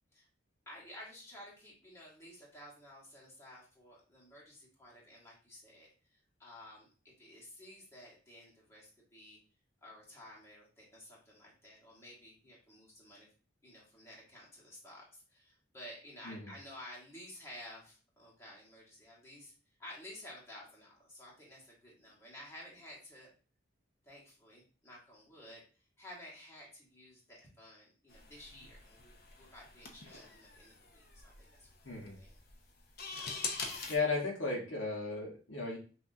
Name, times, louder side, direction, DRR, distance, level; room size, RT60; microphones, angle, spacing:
voice 1, 0.6-6.9 7.2-9.4 9.8-13.3 13.6-19.5 19.8-23.3 24.0-25.6 26.0-31.7 32.1-32.4, left 1 dB, 15° left, -5 dB, 1.5 m, -53 dB
Mac Book Pro CD Drive Working, 28.1-34.0, left 4 dB, 50° left, 0.8 m, -44 dB
voice 2, 31.8-32.2 33.9-35.8, left 3 dB, 70° left, -1 dB, 1.3 m, -35 dB
5.9 x 2.8 x 2.7 m, 0.37 s
head